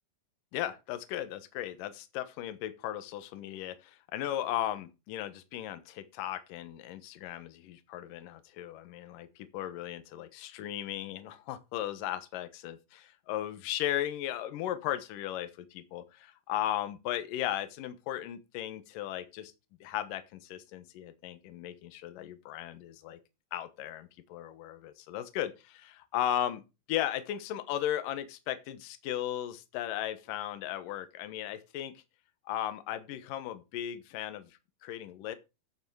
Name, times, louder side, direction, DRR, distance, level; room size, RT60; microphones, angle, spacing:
voice 1, 0.5-19.5 19.8-23.2 23.5-26.6 26.9-31.9 32.5-35.3, left 12 dB, 70° left, 2.3 m, -36 dB
9.5 x 8.1 x 4.7 m
omnidirectional pair, 5.0 m